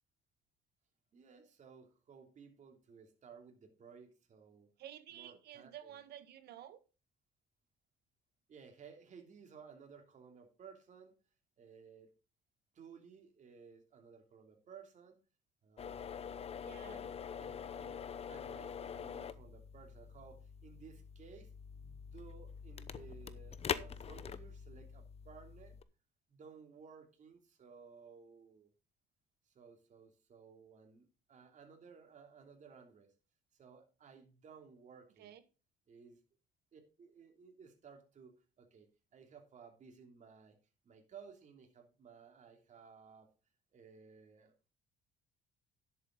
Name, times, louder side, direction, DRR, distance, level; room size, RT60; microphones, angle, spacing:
voice 1, 1.1-4.7 5.1-5.9 8.5-11.1 11.6-12.1 12.7-15.2 15.6-16.0 16.9-18.0 18.3-25.8 26.3-28.7 29.5-33.1 33.6-35.3 35.9-36.2 36.7-40.6 40.8-43.3 43.7-44.5, right 6 dB, 45° right, 4 dB, 3.1 m, -57 dB
voice 2, 4.8-6.8 16.6-17.1 35.2-35.4, right 11 dB, 70° right, 11 dB, 1.6 m, -52 dB
sound 1, 15.8-25.8, left 7 dB, 35° left, 0.8 m, -45 dB
11.0 x 7.9 x 4.0 m, 0.32 s
cardioid pair, 110°, 17 cm